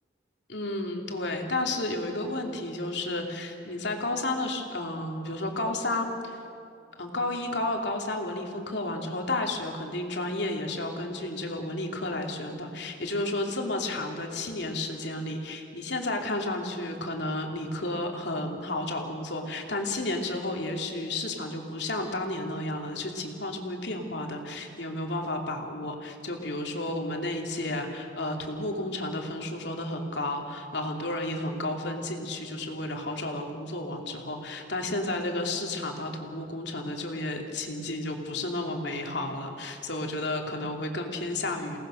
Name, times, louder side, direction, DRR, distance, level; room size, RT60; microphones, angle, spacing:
voice 1, 0.5-6.4 7.0-41.8, left 2 dB, 70° left, 2 dB, 2.9 m, -32 dB
29.0 x 18.5 x 6.4 m, 2.6 s
head